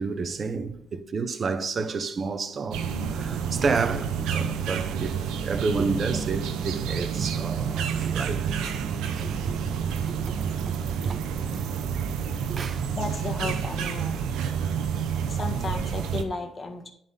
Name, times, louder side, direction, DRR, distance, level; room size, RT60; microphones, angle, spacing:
voice 1, 0.0-8.5 9.2-10.7 11.0-11.6 12.5-12.9 15.4-15.5, right 4 dB, 45° right, 0.9 m, -31 dB
sound 1, 2.7-16.2, right 7 dB, 90° right, 0.8 m, -29 dB
voice 2, 12.9-14.3 15.3-16.9, left 3 dB, 35° left, 1.5 m, -34 dB
10.5 x 4.2 x 5.6 m
cardioid pair, 90°, 0 cm